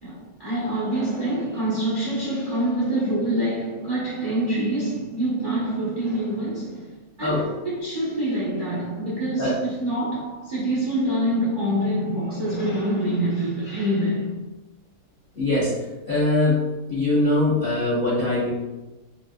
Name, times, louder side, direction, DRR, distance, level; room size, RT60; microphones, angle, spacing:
voice 1, 0.0-6.9 7.2-14.4, right 1 dB, 40° right, 0.7 m, -26 dB
voice 2, 7.2-7.5 9.4-9.6 15.3-15.8 16.1-16.6 16.9-18.5, left 2 dB, 60° left, 0.5 m, -22 dB
4.1 x 2.4 x 2.3 m
omnidirectional pair, 2.2 m